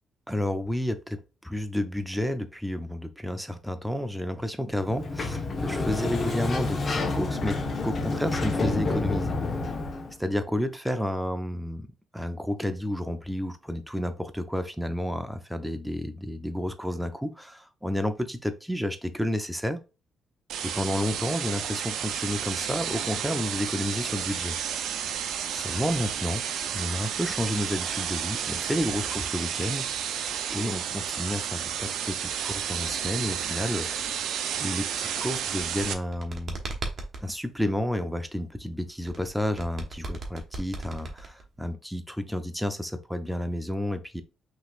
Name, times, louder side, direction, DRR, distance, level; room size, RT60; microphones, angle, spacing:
voice 1, 0.3-9.4 10.2-11.9 12.1-19.8 20.6-24.6 25.5-26.4 26.7-29.9 30.5-34.2 34.6-36.6 37.2-44.2, equal, ahead, 0.6 m, -31 dB
Sliding door, 4.8-10.1, left 3 dB, 40° left, 1.1 m, -29 dB
sound 1, 20.5-35.9, right 8 dB, 80° right, 0.6 m, -31 dB
sound 2, 35.4-37.2 39.1-41.6, right 2 dB, 45° right, 1.3 m, -36 dB
5.6 x 3.1 x 2.5 m
cardioid pair, 90°, 0 cm